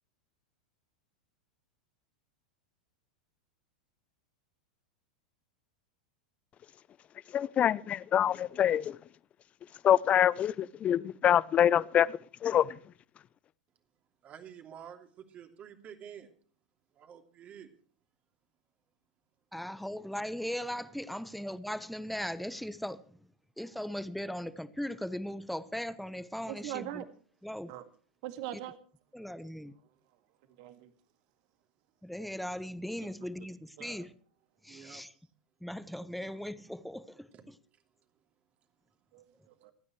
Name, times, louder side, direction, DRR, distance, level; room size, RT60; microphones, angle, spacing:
voice 1, 7.3-9.0 9.8-12.8, left 10 dB, 30° left, 0.6 m, -26 dB
voice 2, 14.2-16.3 16.9-17.7 34.7-35.3 37.3-37.5 37.7-37.8, right 8 dB, 35° right, 2.9 m, -50 dB
voice 3, 19.5-23.2 23.6-27.0 27.4-27.7 28.5-28.6 29.1-29.7 32.0-34.1 34.6-35.1 35.6-37.3, equal, ahead, 1.1 m, -38 dB
voice 4, 26.5-27.1 27.7-27.8 28.2-28.8 30.5-30.9 33.4-33.5 33.8-34.1 39.1-39.7, right 13 dB, 60° right, 2.1 m, -41 dB
27.0 x 9.6 x 3.2 m
hypercardioid pair, 100°, 4 cm